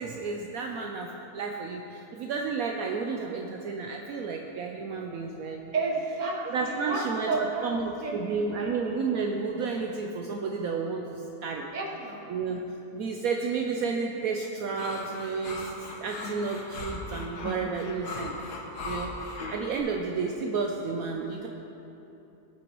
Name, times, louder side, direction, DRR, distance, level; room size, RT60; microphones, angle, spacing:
voice 1, 0.0-5.6 6.4-11.6 12.3-12.6 12.9-15.7 16.0-18.3 18.8-19.1 19.5-21.5, right 4 dB, 70° right, 1 dB, 1.0 m, -31 dB
voice 2, 5.7-7.7 8.0-9.0 11.7-12.3, right 3 dB, 30° right, -1 dB, 1.2 m, -32 dB
sound 1, 14.8-19.8, left 2 dB, 90° left, 1.7 m, -38 dB
18.0 x 6.9 x 3.0 m, 3.0 s
omnidirectional pair, 1.7 m